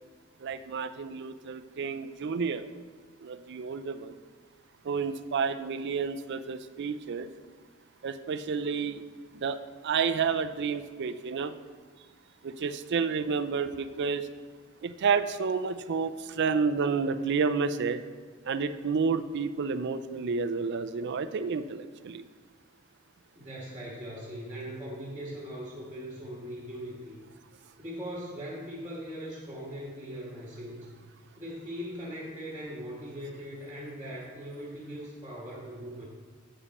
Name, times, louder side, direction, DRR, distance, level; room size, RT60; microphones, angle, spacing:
voice 1, 0.4-2.6 3.2-4.2 4.8-7.3 8.0-9.0 9.3-11.5 12.4-14.3 14.8-18.0 18.4-22.2, right 5 dB, 55° right, 11 dB, 0.4 m, -30 dB
voice 2, 23.3-27.2 27.8-30.9 31.4-36.1, equal, 15° right, -5 dB, 1.5 m, -40 dB
8.6 x 7.0 x 4.2 m, 1.5 s
head